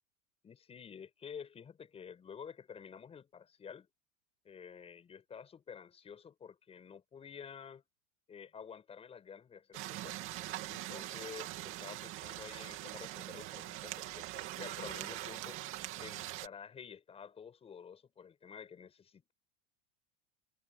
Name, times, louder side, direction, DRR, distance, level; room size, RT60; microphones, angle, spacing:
voice 1, 0.4-3.9 4.4-7.8 8.3-10.2 10.7-15.6 16.0-19.3, left 7 dB, 15° left, 7.0 m, -50 dB
sound 1, 9.7-16.5, right 16 dB, 30° right, 2.5 m, -43 dB
supercardioid pair, 175°, 39 cm